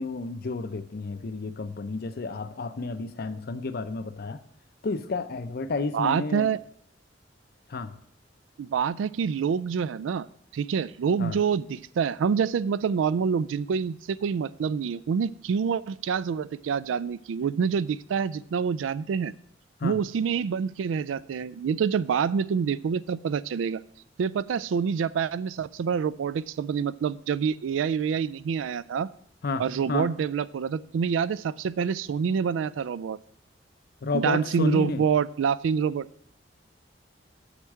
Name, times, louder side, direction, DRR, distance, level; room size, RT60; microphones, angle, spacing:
voice 1, 0.0-4.4 4.8-6.5 7.7-8.0 11.2-11.4 19.8-20.0 29.4-30.1 34.0-35.0, left 3 dB, 55° left, 12 dB, 0.6 m, -31 dB
voice 2, 5.9-6.6 8.6-10.3 10.5-19.3 19.8-23.8 24.2-29.1 29.6-33.2 34.1-36.1, right 6 dB, 85° right, 19 dB, 0.3 m, -27 dB
8.1 x 4.5 x 7.3 m, 0.68 s
head